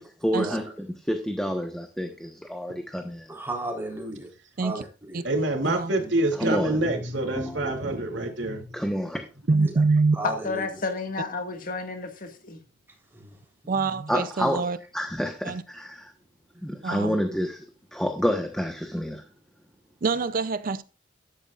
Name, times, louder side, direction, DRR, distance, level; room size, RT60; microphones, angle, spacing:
voice 1, 0.0-3.3 6.4-6.8 7.3-7.8 8.7-9.2 14.1-14.6 14.9-16.1 16.6-17.6 17.9-19.2, equal, 5° left, 1.1 m, -29 dB
voice 2, 3.3-4.3 4.6-5.2 6.0-6.1 9.6-9.7 10.1-10.6 13.1-13.4 13.6-13.9, right 2 dB, 15° right, 3.6 m, -34 dB
voice 3, 5.2-8.6, right 1 dB, 70° right, 2.7 m, -26 dB
voice 4, 9.5-10.2 13.7-14.8 15.4-15.6 16.8-17.2 20.0-20.8, right 3 dB, 50° right, 0.5 m, -25 dB
voice 5, 10.2-12.6, left 4 dB, 50° left, 1.8 m, -31 dB
13.5 x 11.0 x 2.4 m
head